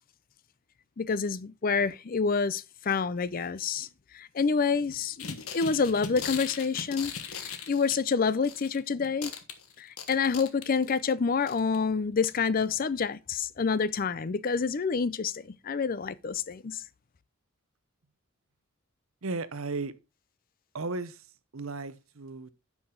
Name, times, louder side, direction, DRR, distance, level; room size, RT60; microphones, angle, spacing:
voice 1, 1.0-3.9 4.1-9.3 9.8-16.8, left 5 dB, 40° left, 0.4 m, -28 dB
sound 1, 5.2-8.8 9.0-11.0 11.5-11.8 12.2-12.3 12.6-12.7, left 7 dB, 90° left, 1.4 m, -39 dB
voice 2, 19.2-20.0 20.7-22.5, right 3 dB, 75° right, 0.8 m, -35 dB
9.9 x 6.0 x 3.8 m
head